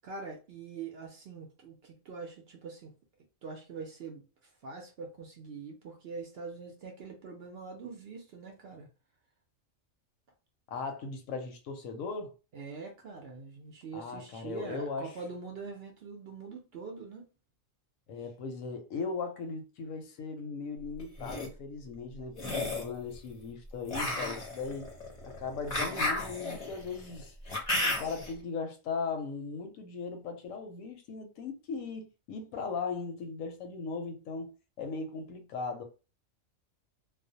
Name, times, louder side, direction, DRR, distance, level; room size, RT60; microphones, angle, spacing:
voice 1, 0.0-2.9 3.4-4.2 4.6-8.9 12.5-17.2, right 4 dB, 65° right, 0.7 m, -43 dB
voice 2, 10.7-12.3 13.9-15.1 18.1-24.9 25.2-27.3 28.0-35.8, left 4 dB, 80° left, 1.0 m, -38 dB
sound 1, 21.0-21.5 22.3-22.9 23.9-28.3, left 2 dB, 40° left, 0.5 m, -33 dB
2.4 x 2.0 x 2.6 m
omnidirectional pair, 1.4 m